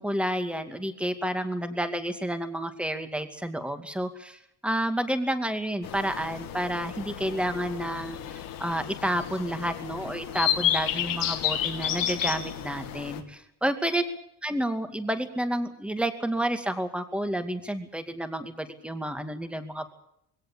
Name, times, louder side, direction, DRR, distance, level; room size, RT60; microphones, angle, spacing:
voice 1, 0.0-14.0 14.4-19.9, right 1 dB, 5° right, 8 dB, 2.4 m, -30 dB
sound 1, 5.8-13.2, left 11 dB, 80° left, 2.7 m, -31 dB
21.5 x 17.5 x 8.7 m, 0.76 s
cardioid pair, 135°, 33 cm